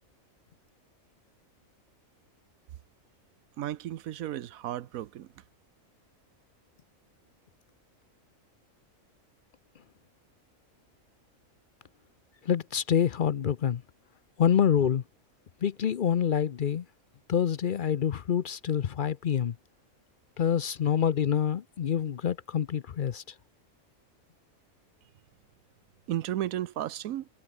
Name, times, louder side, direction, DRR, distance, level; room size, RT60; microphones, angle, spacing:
voice 1, 3.6-5.3 26.1-27.3, right 12 dB, 90° right, 1.2 m, -34 dB
voice 2, 12.4-13.8 14.4-15.0 15.6-16.8 17.3-19.6 20.4-23.2, left 8 dB, 50° left, 0.6 m, -26 dB
omnidirectional pair, 1.4 m